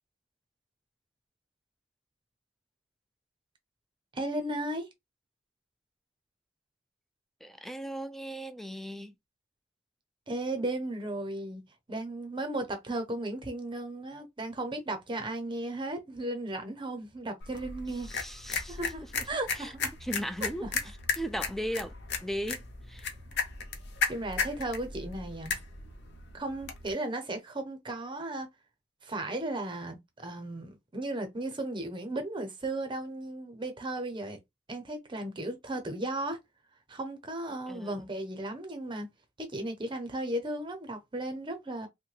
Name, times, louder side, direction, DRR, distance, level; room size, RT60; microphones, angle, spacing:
voice 1, 4.1-4.9 10.3-11.6 11.9-18.1 18.6-19.9 20.6-20.7 24.1-25.5 26.3-28.5 29.0-34.4 34.7-36.4 36.9-39.1 39.4-41.9, right 1 dB, 25° right, 0.7 m, -35 dB
voice 2, 7.4-9.1 18.0-19.3 19.6-19.7 20.0-21.9 22.2-23.1 37.7-37.9, equal, ahead, 0.3 m, -37 dB
sound 1, 17.4-26.9, left 5 dB, 60° left, 0.7 m, -36 dB
3.1 x 2.2 x 3.2 m
head